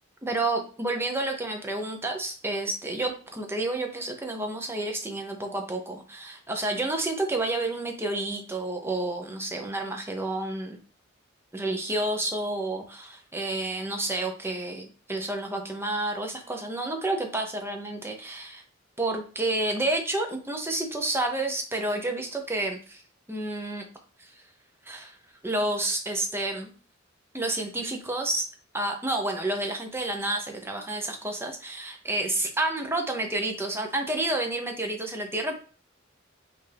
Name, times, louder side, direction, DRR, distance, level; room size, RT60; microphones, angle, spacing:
voice 1, 0.2-10.8 11.5-18.6 19.0-23.0 23.3-23.8 24.9-25.2 25.4-26.7 27.3-28.5 28.7-35.5, right 2 dB, 10° right, 3 dB, 0.7 m, -30 dB
5.6 x 2.7 x 3.4 m, 0.38 s
head